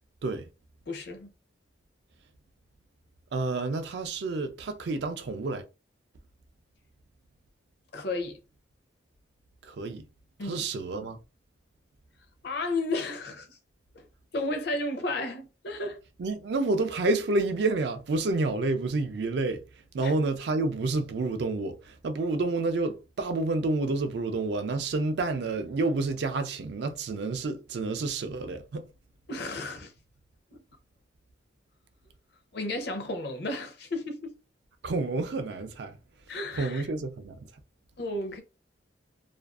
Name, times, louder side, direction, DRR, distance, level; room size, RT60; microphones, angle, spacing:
voice 1, 0.9-1.3 7.9-8.4 10.4-10.6 12.4-13.6 13.9-14.1 14.3-16.0 20.0-20.1 29.3-29.9 30.5-30.6 32.5-34.4 36.3-36.9 38.0-38.4, left 2 dB, 60° left, 0.5 m, -33 dB
voice 2, 3.3-5.6 9.6-10.1 10.4-11.2 16.2-28.9 34.8-36.0 36.5-37.5, right 3 dB, 60° right, 0.4 m, -29 dB
2.4 x 2.3 x 2.3 m
head